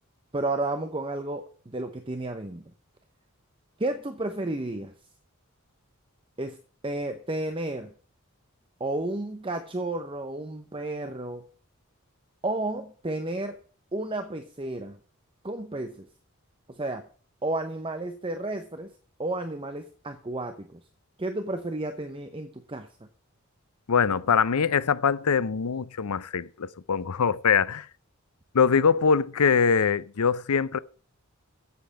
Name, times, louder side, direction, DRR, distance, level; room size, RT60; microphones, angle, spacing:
voice 1, 0.3-2.6 3.8-4.9 6.4-6.6 6.8-7.9 8.8-11.4 12.4-13.6 13.9-15.0 15.4-16.1 16.7-17.0 17.4-18.9 19.2-20.8 21.2-22.9, right 2 dB, 25° right, 0.7 m, -32 dB
voice 2, 23.9-27.9 28.5-30.8, left 6 dB, 85° left, 0.6 m, -23 dB
8.3 x 7.9 x 8.5 m
head